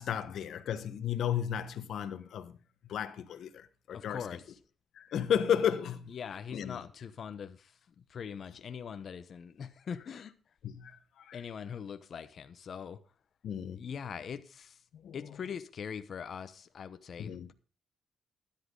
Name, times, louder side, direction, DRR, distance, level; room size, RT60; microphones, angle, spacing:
voice 1, 0.0-2.6 2.9-4.2 5.0-6.1 6.5-6.8 10.6-11.4 13.4-13.8 15.0-15.2 17.2-17.5, left 9 dB, 70° left, 1.2 m, -33 dB
voice 2, 3.9-4.6 6.1-10.3 11.3-13.0 13.7-14.8 15.1-17.5, left 7 dB, 55° left, 0.9 m, -42 dB
13.0 x 10.5 x 3.9 m
cardioid pair, 90°, 0 cm